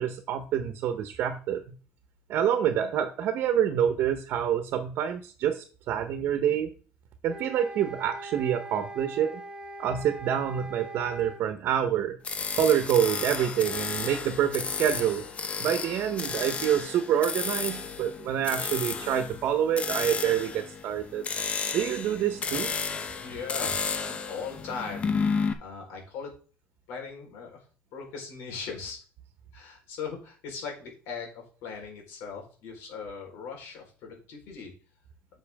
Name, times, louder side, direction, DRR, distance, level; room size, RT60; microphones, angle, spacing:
voice 1, 0.0-1.6 2.3-6.7 7.2-9.4 9.8-12.2 12.5-15.3 15.6-21.3 21.7-22.7, right 9 dB, 60° right, 8 dB, 1.2 m, -27 dB
sound 1, 7.3-11.4, right 2 dB, 25° right, 2.0 m, -42 dB
sound 2, 12.2-25.5, left 5 dB, 30° left, 0.9 m, -32 dB
voice 2, 23.2-26.3 26.9-27.6 27.9-29.0 29.5-34.7, left 5 dB, 75° left, 0 dB, 4.4 m, -39 dB
10.0 x 6.2 x 3.6 m, 0.38 s
cardioid pair, 130°, 4 cm